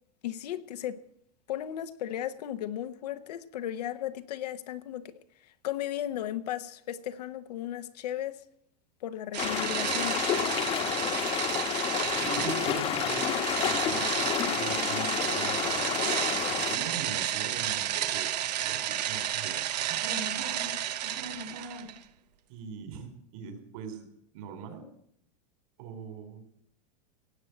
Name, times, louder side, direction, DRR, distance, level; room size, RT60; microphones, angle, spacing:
voice 1, 0.2-1.0 1.5-8.4 9.0-10.2, left 11 dB, 80° left, 1.0 m, -35 dB
sound 1, 9.3-22.0, right 11 dB, 85° right, 1.0 m, -32 dB
sound 2, 9.4-16.8, left 9 dB, 30° left, 1.1 m, -30 dB
voice 2, 12.2-15.9 16.7-19.5 19.9-20.7 21.0-21.9 22.5-24.1 24.3-24.9 25.8-26.4, right 5 dB, 55° right, 3.8 m, -41 dB
17.5 x 7.6 x 7.9 m
supercardioid pair, 140°, 20 cm